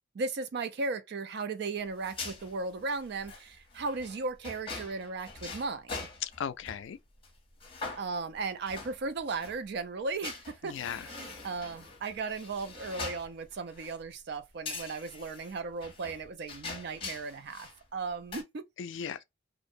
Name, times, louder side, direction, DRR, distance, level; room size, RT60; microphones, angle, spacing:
voice 1, 0.1-6.1 8.0-18.6, right 4 dB, 55° right, 0.4 m, -36 dB
sound 1, 1.9-6.8 7.2-7.3 7.6-9.6 10.2-14.0 14.6-17.8 18.1-18.4, left 3 dB, 25° left, 0.7 m, -43 dB
voice 2, 6.2-7.0 10.6-11.1 18.8-19.2, left 8 dB, 70° left, 0.3 m, -37 dB
2.5 x 2.0 x 2.5 m
head